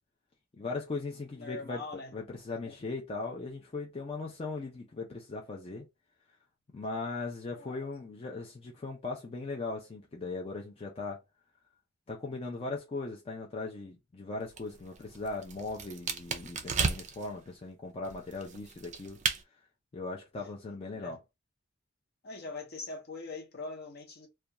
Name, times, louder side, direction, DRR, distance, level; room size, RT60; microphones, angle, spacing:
voice 1, 0.5-5.9 6.7-11.2 12.1-19.2 19.9-21.2, left 3 dB, 30° left, 0.4 m, -39 dB
voice 2, 1.4-2.1 2.6-2.8 7.6-7.8 20.9-21.2 22.2-24.3, left 3 dB, 55° left, 0.8 m, -42 dB
sound 1, 14.4-17.3 18.0-19.4, right 5 dB, 40° right, 0.4 m, -34 dB
2.4 x 2.2 x 2.8 m
head